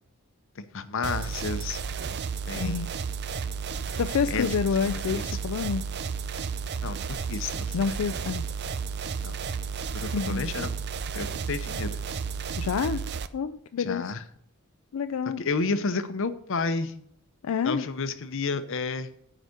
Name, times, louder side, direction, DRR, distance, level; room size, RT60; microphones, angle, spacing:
voice 1, 0.6-1.8 2.5-2.9 4.3-4.5 4.8-5.2 6.8-8.0 9.2-9.4 9.9-10.8 11.1-12.0 13.8-14.2 15.4-16.9 17.6-19.1, left 4 dB, 65° left, 11 dB, 0.8 m, -31 dB
sound 1, 1.0-13.3, right 6 dB, 50° right, 0.5 m, -32 dB
voice 2, 2.6-2.9 4.0-5.8 7.7-8.5 10.1-10.5 12.6-13.0 13.3-14.0 14.9-15.4 17.4-17.9, left 6 dB, 85° left, 11 dB, 0.4 m, -28 dB
9.6 x 5.0 x 6.6 m, 0.71 s
head